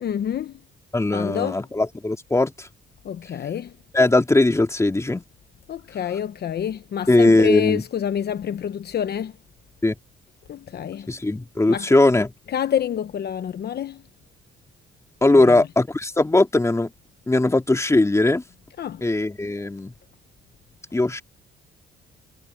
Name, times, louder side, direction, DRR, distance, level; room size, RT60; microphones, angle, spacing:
voice 1, 0.0-0.6 1.1-1.6 3.0-3.7 5.7-9.4 10.5-11.1 11.7-11.9 12.5-14.0 15.3-15.6 18.8-19.0, left 9 dB, 55° left, 0.9 m, -27 dB
voice 2, 0.9-2.7 3.9-5.2 7.1-7.8 9.8-9.9 11.1-12.3 15.2-16.9 17.3-18.4 19.0-19.9 20.9-21.2, left 2 dB, 15° left, 2.8 m, -19 dB
cardioid pair, 90°, 20 cm